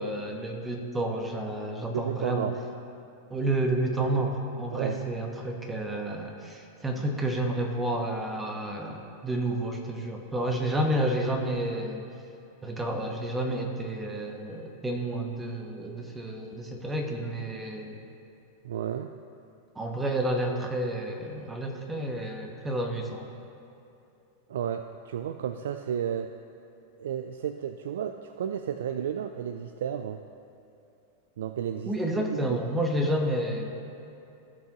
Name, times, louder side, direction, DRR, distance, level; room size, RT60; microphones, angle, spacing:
voice 1, 0.0-2.5 3.3-12.1 12.6-18.0 19.7-23.3 31.9-33.7, right 1 dB, 15° right, 2 dB, 1.2 m, -30 dB
voice 2, 1.9-2.6 4.7-5.0 18.6-19.1 24.5-26.3 27.0-30.2 31.4-31.9 32.3-32.6, right 9 dB, 75° right, 8 dB, 0.3 m, -32 dB
16.5 x 5.8 x 3.0 m, 2.7 s
hypercardioid pair, 105°, 0 cm